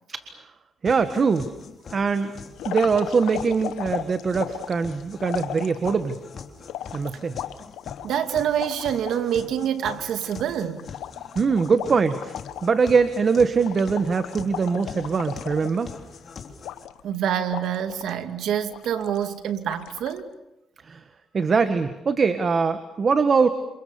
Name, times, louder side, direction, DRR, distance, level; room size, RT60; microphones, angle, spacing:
sound 1, 0.8-16.8, left 5 dB, 50° left, 3.6 m, -43 dB
voice 1, 0.8-1.5 1.9-2.3 2.7-6.2 6.9-7.4 11.4-15.9 20.8-21.0 21.3-23.5, right 5 dB, 40° right, 1.6 m, -22 dB
sound 2, 2.6-6.2 6.7-9.2 9.6-9.7 9.9-12.8 13.1-13.3 13.6-16.1 16.6-17.2 17.5-18.2 18.7-19.3 19.7-20.2, left 12 dB, 90° left, 1.1 m, -36 dB
voice 2, 8.0-10.9 17.0-20.3, right 9 dB, 75° right, 2.2 m, -26 dB
28.0 x 28.0 x 7.0 m
cardioid pair, 90°, 0 cm